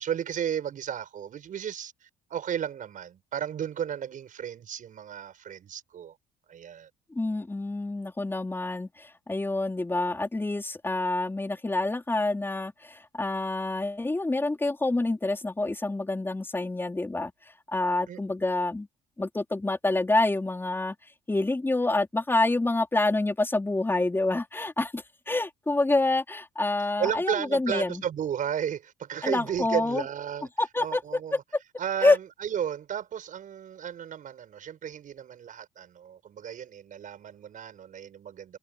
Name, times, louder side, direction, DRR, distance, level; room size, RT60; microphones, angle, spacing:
voice 1, 0.0-6.2 6.5-6.9 18.1-18.2 27.0-30.5 30.8-31.4 31.8-38.6, right 9 dB, 50° right, 6.2 m, -33 dB
voice 2, 7.1-17.3 17.7-18.9 19.2-20.9 21.3-28.0 29.2-30.0 30.6-31.0 31.3-31.4 32.0-32.2, left 2 dB, 15° left, 4.5 m, -27 dB
cardioid pair, 110°, 17 cm